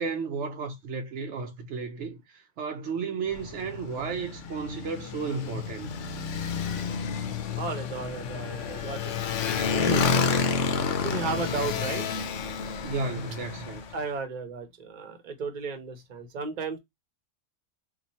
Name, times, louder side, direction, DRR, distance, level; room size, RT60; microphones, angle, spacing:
voice 1, 0.0-5.9 12.8-13.8, right 4 dB, 75° right, 0.9 m, -33 dB
Motorcycle, 3.3-14.0, left 5 dB, 85° left, 1.0 m, -30 dB
voice 2, 7.6-9.1 9.7-10.1 11.0-12.1 13.9-16.8, right 4 dB, 40° right, 0.9 m, -34 dB
2.9 x 2.5 x 4.0 m
omnidirectional pair, 1.2 m